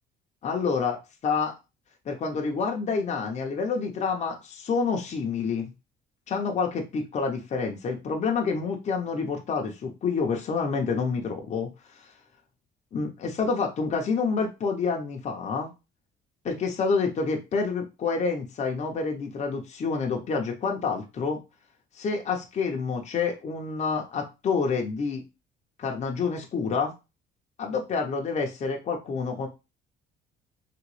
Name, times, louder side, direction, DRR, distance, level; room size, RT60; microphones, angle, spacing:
voice 1, 0.4-1.5 2.1-5.7 6.3-12.1 12.9-15.7 16.4-21.4 21.9-25.2 25.8-26.9 27.6-29.5, left 5 dB, 35° left, 1 dB, 0.7 m, -28 dB
3.0 x 3.0 x 3.1 m, 0.27 s
cardioid pair, 130°, 19 cm